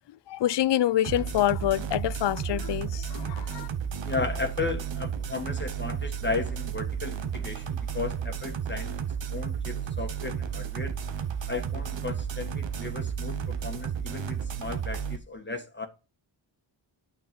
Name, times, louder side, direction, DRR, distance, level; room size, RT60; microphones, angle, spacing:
voice 1, 0.3-3.7, left 13 dB, 70° left, 0.5 m, -26 dB
sound 1, 1.0-15.2, right 7 dB, 80° right, 1.2 m, -33 dB
voice 2, 4.0-8.9 9.3-10.9 11.5-15.9, left 3 dB, 25° left, 1.7 m, -35 dB
8.7 x 6.9 x 5.4 m
cardioid pair, 65°, 44 cm